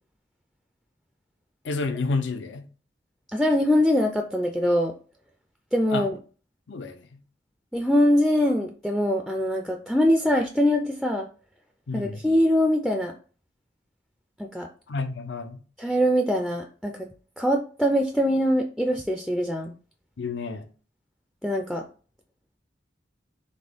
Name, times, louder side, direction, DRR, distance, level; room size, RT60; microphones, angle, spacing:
voice 1, 1.6-2.7 5.9-6.1 6.7-7.2 11.9-12.2 14.9-15.6 20.2-20.7, left 3 dB, 80° left, 0.6 m, -30 dB
voice 2, 3.3-4.9 5.7-6.1 7.7-11.3 11.9-13.2 14.5-14.7 15.8-17.1 17.4-19.7 21.4-21.8, equal, ahead, 0.3 m, -23 dB
4.2 x 3.0 x 3.4 m
head